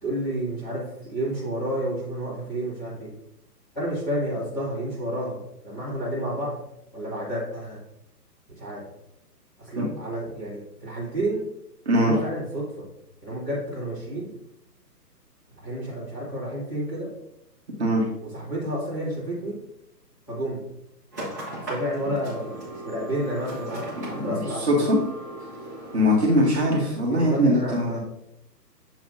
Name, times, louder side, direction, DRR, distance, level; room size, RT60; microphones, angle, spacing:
voice 1, 0.0-3.1 3.7-6.6 6.9-7.8 8.6-8.9 9.6-11.4 12.0-12.9 13.2-14.3 15.6-17.1 18.2-19.6 20.3-20.6 21.6-24.9 27.1-28.0, right 1 dB, 10° left, -12 dB, 2.1 m, -30 dB
sound 1, 21.1-26.9, right 1 dB, 10° right, 0.9 m, -37 dB
voice 2, 24.7-25.0 25.9-28.0, equal, 40° right, -3 dB, 1.2 m, -21 dB
7.1 x 5.9 x 2.6 m, 0.81 s
hypercardioid pair, 175°, 50 cm